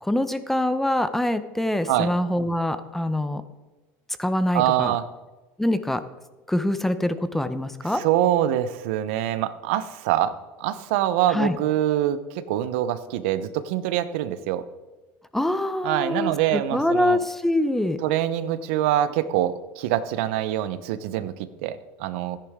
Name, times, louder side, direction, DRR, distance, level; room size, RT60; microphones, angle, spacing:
voice 1, 0.0-3.4 4.2-5.0 5.6-6.0 6.5-8.0 11.3-11.6 15.3-18.0, left 1 dB, 5° left, 12 dB, 0.6 m, -24 dB
voice 2, 4.5-5.0 8.0-10.3 10.6-14.6 15.8-17.2 18.0-21.3 21.6-22.4, right 12 dB, 80° right, 13 dB, 0.7 m, -24 dB
13.0 x 10.0 x 3.6 m, 1.2 s
supercardioid pair, 120°, 6 cm